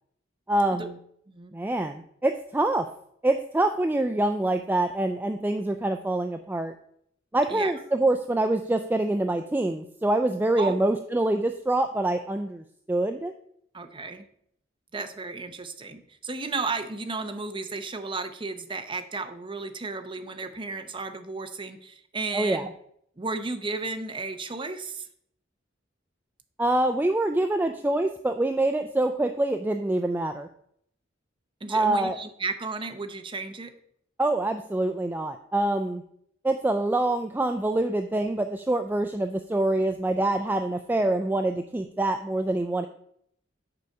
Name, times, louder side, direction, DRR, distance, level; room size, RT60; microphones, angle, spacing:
voice 1, 0.5-0.9 1.5-2.9 3.2-6.7 7.3-13.3 22.3-22.7 26.6-30.5 31.7-32.2 34.2-36.0 36.4-42.9, right 2 dB, 10° right, 6 dB, 0.3 m, -25 dB
voice 2, 13.7-14.2 14.9-22.7 23.2-25.1 31.6-33.7, right 3 dB, 25° right, 7 dB, 0.7 m, -33 dB
6.8 x 4.8 x 6.5 m, 0.68 s
head